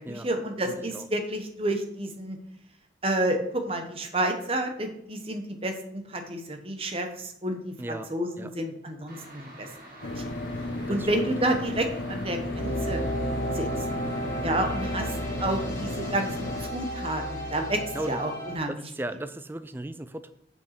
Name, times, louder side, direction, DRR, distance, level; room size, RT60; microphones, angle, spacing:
voice 1, 0.0-2.4 3.0-9.7 10.1-10.3 10.9-13.1 13.5-13.9 14.4-17.8 18.1-18.8 19.1-19.2, right 1 dB, 30° right, 5 dB, 1.1 m, -30 dB
voice 2, 0.6-1.1 7.8-8.1 8.4-8.5 10.9-11.1 17.9-18.2 18.7-20.3, right 1 dB, 10° right, 11 dB, 0.4 m, -36 dB
sound 1, 9.1-17.5, right 1 dB, 50° right, 2.2 m, -48 dB
sound 2, 10.0-16.7, left 2 dB, 80° left, 0.8 m, -34 dB
sound 3, 12.3-18.5, equal, 20° left, 3.1 m, -33 dB
6.5 x 6.0 x 5.8 m, 0.75 s
head